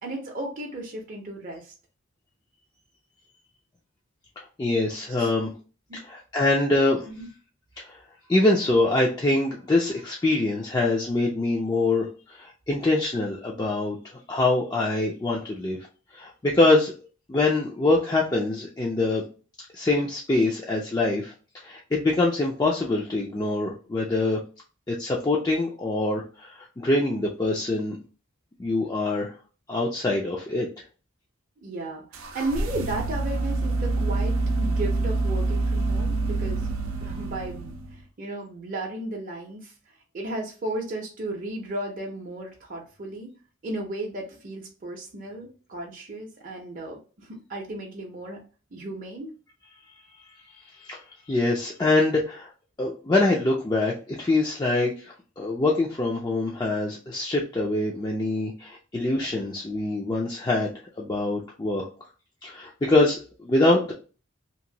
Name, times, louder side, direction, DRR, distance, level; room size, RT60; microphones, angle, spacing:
voice 1, 0.0-1.7 5.1-5.3 5.9-6.0 7.1-7.3 31.6-36.6 37.0-39.7 40.1-43.3 43.6-48.4 48.7-49.3, right 2 dB, 40° right, -1 dB, 0.6 m, -34 dB
voice 2, 4.4-5.5 5.9-7.1 7.8-8.0 8.3-14.0 14.3-15.8 16.1-16.9 17.3-19.2 19.7-21.3 21.6-24.4 24.9-28.0 28.6-29.3 29.7-30.7 50.9-51.0 51.3-52.5 52.8-61.9 62.4-63.9, left 2 dB, 20° left, -2 dB, 0.4 m, -24 dB
sound 1, 32.1-38.0, right 2 dB, 85° right, 0.5 m, -26 dB
2.9 x 2.5 x 2.7 m, 0.36 s
head